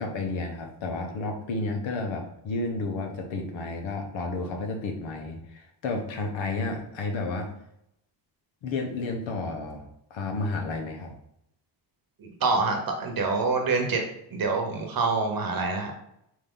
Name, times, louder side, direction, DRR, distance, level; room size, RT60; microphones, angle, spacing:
voice 1, 0.0-7.5 8.6-11.1, left 3 dB, 85° left, 3 dB, 1.1 m, -31 dB
voice 2, 12.2-14.0 14.3-15.9, right 3 dB, 50° right, 3 dB, 1.0 m, -26 dB
5.1 x 2.8 x 3.8 m, 0.78 s
cardioid pair, 125°, 45 cm